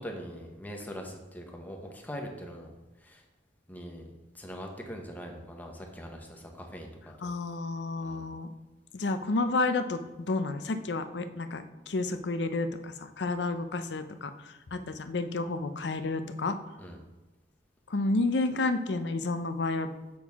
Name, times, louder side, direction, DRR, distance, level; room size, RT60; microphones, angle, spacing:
voice 1, 0.0-2.7 3.0-3.2 3.7-4.1 4.3-7.3 8.0-8.3 16.8-17.0, equal, 10° left, 2 dB, 1.0 m, -42 dB
voice 2, 7.2-8.5 8.9-16.6 17.9-19.9, left 3 dB, 75° left, 9 dB, 0.6 m, -31 dB
7.2 x 6.3 x 3.5 m, 1.1 s
head